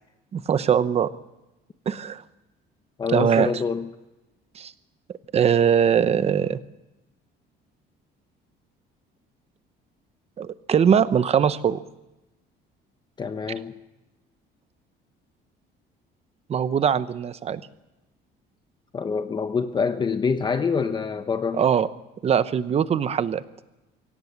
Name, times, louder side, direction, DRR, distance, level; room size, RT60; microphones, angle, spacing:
voice 1, 0.3-1.1 1.9-2.2 3.1-3.5 4.6-4.7 5.3-6.6 10.4-11.8 16.5-17.6 21.5-21.9 22.2-23.4, right 8 dB, 30° right, 14 dB, 0.9 m, -21 dB
voice 2, 3.0-3.9 13.2-13.8 18.9-21.6, left 5 dB, 20° left, 8 dB, 0.9 m, -26 dB
24.5 x 17.5 x 7.3 m, 1.0 s
cardioid pair, 155°, 20 cm